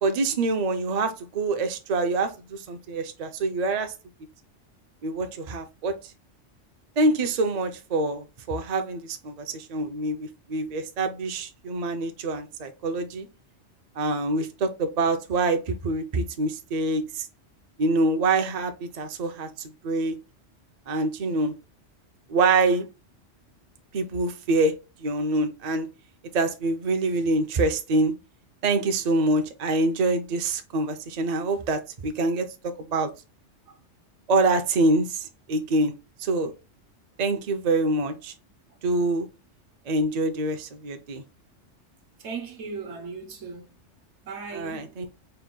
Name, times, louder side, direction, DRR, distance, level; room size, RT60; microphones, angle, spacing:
voice 1, 0.0-3.9 5.0-6.0 7.0-13.3 14.0-17.3 17.8-20.2 20.9-21.5 22.3-22.9 23.9-24.7 25.0-25.9 26.3-28.1 28.6-33.1 34.3-35.9 36.2-36.5 37.2-38.3 38.8-39.3 39.9-41.2 44.5-45.1, right 2 dB, 50° right, 0.5 m, -25 dB
voice 2, 42.2-43.7 44.2-44.9, right 5 dB, 70° right, 1.2 m, -37 dB
4.4 x 2.2 x 3.7 m
omnidirectional pair, 1.2 m